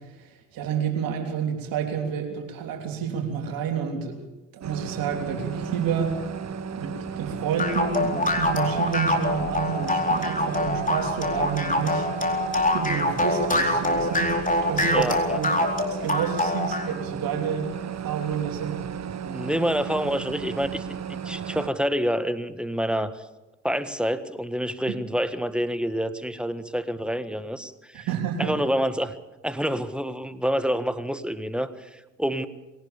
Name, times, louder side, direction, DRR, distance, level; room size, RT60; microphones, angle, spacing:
voice 1, 0.5-4.2 4.5-6.1 6.8-12.1 12.7-14.3 14.6-15.1 15.3-15.5 15.9-17.7 18.0-18.8 24.9-25.0 27.9-28.6, right 7 dB, 65° right, 3 dB, 3.4 m, -29 dB
sound 1, 4.6-21.7, right 7 dB, 45° right, 1.3 m, -35 dB
sound 2, 7.6-16.9, left 1 dB, 20° left, 4.2 m, -24 dB
voice 2, 14.9-15.4 19.3-21.0 21.2-23.1 23.6-28.1 28.4-29.1 29.4-32.5, equal, 5° right, 12 dB, 1.6 m, -27 dB
21.5 x 18.0 x 7.1 m, 1.0 s
hypercardioid pair, 50°, 37 cm